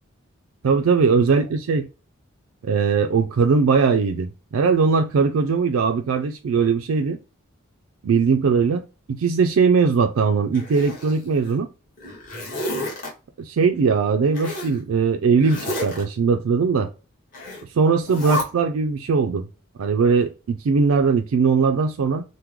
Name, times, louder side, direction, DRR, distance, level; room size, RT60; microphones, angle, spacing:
voice 1, 0.6-1.9 2.6-7.2 8.0-8.8 9.1-11.7 13.4-16.9 17.7-19.4 19.8-22.2, right 5 dB, 80° right, 0.4 m, -20 dB
Zipper (clothing), 10.5-11.5 12.0-13.1 14.3-14.8 15.4-16.0 17.3-17.6 18.0-18.4, left 1 dB, 40° left, 1.3 m, -30 dB
3.5 x 2.1 x 3.0 m
head